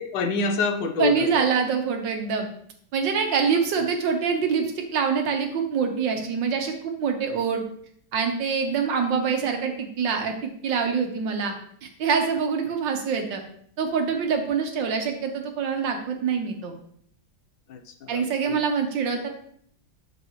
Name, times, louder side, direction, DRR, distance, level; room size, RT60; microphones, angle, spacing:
voice 1, 0.0-1.5 17.7-18.6, left 3 dB, 70° left, 7 dB, 1.4 m, -27 dB
voice 2, 1.0-2.5 2.9-7.6 8.1-11.5 11.8-13.4 13.8-16.7 18.1-19.3, right 6 dB, 70° right, 4 dB, 1.7 m, -25 dB
8.2 x 6.7 x 3.1 m, 0.65 s
omnidirectional pair, 2.1 m